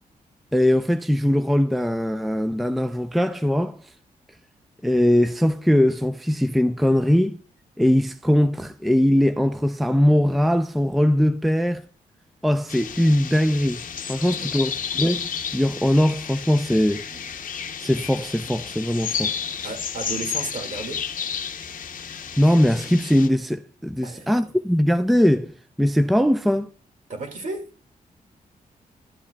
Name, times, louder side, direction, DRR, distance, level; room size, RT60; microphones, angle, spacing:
voice 1, 0.5-3.8 4.8-7.4 7.8-11.8 12.4-13.8 14.1-17.0 17.8-19.3 19.6-19.7 22.4-26.7, equal, ahead, 0.4 m, -21 dB
sound 1, 12.7-23.3, left 7 dB, 65° left, 0.7 m, -32 dB
voice 2, 14.3-14.7 17.1-17.2 19.6-21.0 24.0-24.5 27.1-27.7, right 3 dB, 55° right, 2.0 m, -34 dB
12.0 x 7.2 x 2.2 m
cardioid pair, 105°, 15 cm